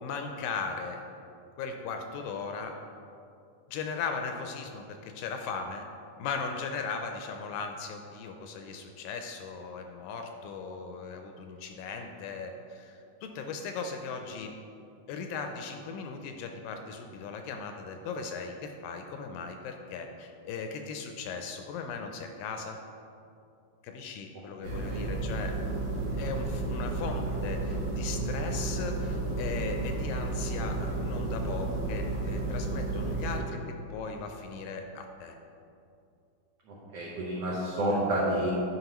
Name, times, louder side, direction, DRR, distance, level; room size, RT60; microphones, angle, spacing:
voice 1, 0.0-1.0 1.6-2.7 3.7-5.8 6.2-14.5 15.1-22.8 23.8-25.5 26.2-33.6 33.9-35.4, left 5 dB, 80° left, 4 dB, 2.1 m, -38 dB
sound 1, 24.6-33.4, right 2 dB, 65° right, 2.9 m, -32 dB
voice 2, 24.6-25.1 36.7-38.5, right 1 dB, 85° right, -6 dB, 1.4 m, -30 dB
11.5 x 5.4 x 3.0 m, 2.6 s
omnidirectional pair, 4.3 m